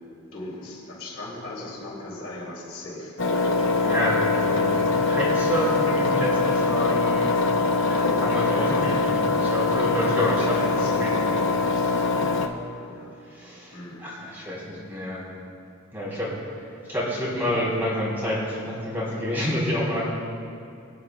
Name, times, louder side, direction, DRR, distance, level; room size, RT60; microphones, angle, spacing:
voice 1, 0.3-3.1 8.5-8.9 10.4-13.1 13.7-14.0, left 2 dB, 80° left, -5 dB, 2.9 m, -39 dB
Engine, 3.2-12.5, left 3 dB, 60° left, 0.8 m, -23 dB
voice 2, 3.5-7.3 7.9-11.3 13.3-15.3 15.9-16.4 16.9-20.0, left 1 dB, 10° right, -7 dB, 3.1 m, -28 dB
22.5 x 9.3 x 2.4 m, 2.6 s
head